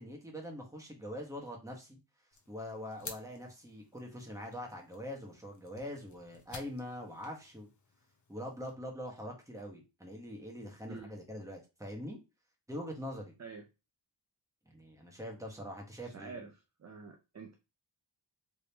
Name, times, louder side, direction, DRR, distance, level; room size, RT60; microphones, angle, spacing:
voice 1, 0.0-2.0 2.5-7.7 8.3-12.2 12.7-13.3 14.7-16.5, equal, 5° right, 0 dB, 1.1 m, -43 dB
sound 1, 2.3-8.7, left 4 dB, 40° left, 0.8 m, -53 dB
voice 2, 16.0-16.5 16.8-17.5, right 5 dB, 40° right, 4 dB, 0.5 m, -47 dB
3.5 x 2.9 x 2.8 m, 0.28 s
wide cardioid pair, 105°, 45 cm